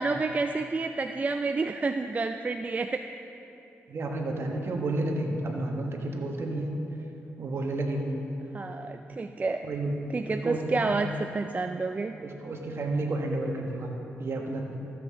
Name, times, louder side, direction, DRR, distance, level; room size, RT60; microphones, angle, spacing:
voice 1, 0.0-3.0 8.5-9.6 10.1-12.1, right 3 dB, 30° right, 7 dB, 0.4 m, -29 dB
voice 2, 3.9-6.7 7.4-8.2 9.6-9.9 10.4-11.0 12.2-13.9 14.2-14.8, right 2 dB, 55° right, 2 dB, 1.4 m, -31 dB
14.0 x 7.7 x 3.7 m, 3.0 s
cardioid pair, 60°, 5 cm